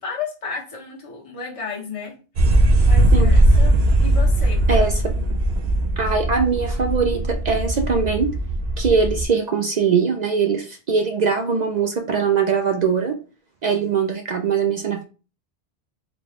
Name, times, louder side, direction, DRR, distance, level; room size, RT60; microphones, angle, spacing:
voice 1, 0.0-2.2 2.8-5.2, left 4 dB, 35° left, -2 dB, 1.0 m, -33 dB
sound 1, 2.4-9.2, right 1 dB, 75° right, 0.9 m, -18 dB
voice 2, 4.7-5.0 6.0-8.3 8.8-13.2 13.6-15.1, right 5 dB, 55° right, 5 dB, 0.5 m, -21 dB
3.9 x 2.3 x 3.4 m, 0.33 s
omnidirectional pair, 1.1 m